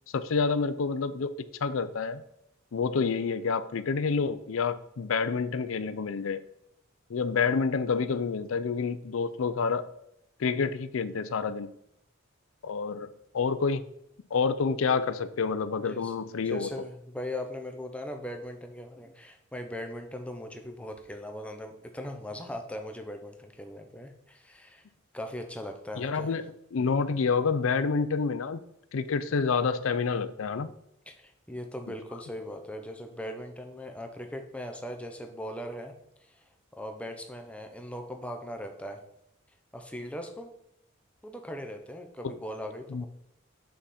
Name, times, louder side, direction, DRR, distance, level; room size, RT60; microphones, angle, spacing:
voice 1, 0.1-1.3 1.6-2.2 2.7-6.4 7.1-9.9 10.4-11.7 12.6-13.8 14.3-16.7 26.0-26.4 26.7-28.6 28.9-30.7 42.9-43.1, left 5 dB, 80° left, 13 dB, 0.5 m, -28 dB
voice 2, 15.8-16.1 16.4-24.8 25.1-26.4 31.1-35.9 36.2-39.0 39.7-40.5 41.2-43.1, left 1 dB, 5° left, 4 dB, 0.7 m, -39 dB
6.5 x 5.7 x 4.2 m, 0.76 s
head